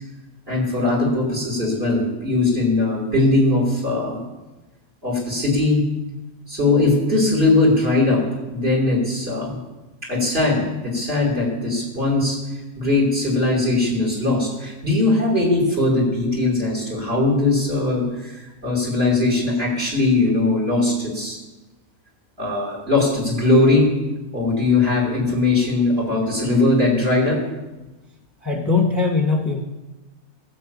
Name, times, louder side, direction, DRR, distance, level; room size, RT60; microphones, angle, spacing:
voice 1, 0.5-4.2 5.0-5.8 6.5-8.2 8.5-9.6 10.0-12.4 12.8-21.4 22.4-23.9 24.3-27.4, left 2 dB, 40° right, -1 dB, 5.2 m, -20 dB
voice 2, 28.4-29.6, left 4 dB, 10° left, 2 dB, 1.4 m, -20 dB
18.0 x 9.2 x 8.6 m, 1.1 s
omnidirectional pair, 1.5 m